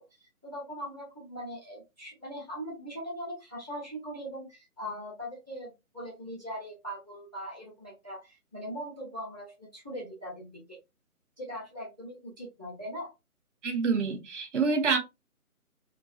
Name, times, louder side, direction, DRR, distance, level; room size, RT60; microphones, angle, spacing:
voice 1, 0.2-10.8 11.4-13.1, equal, 15° right, 0.6 m, -40 dB
voice 2, 13.6-15.0, right 4 dB, 55° right, 0.7 m, -27 dB
2.4 x 2.2 x 2.3 m
figure-of-eight pair, 150°, 44 cm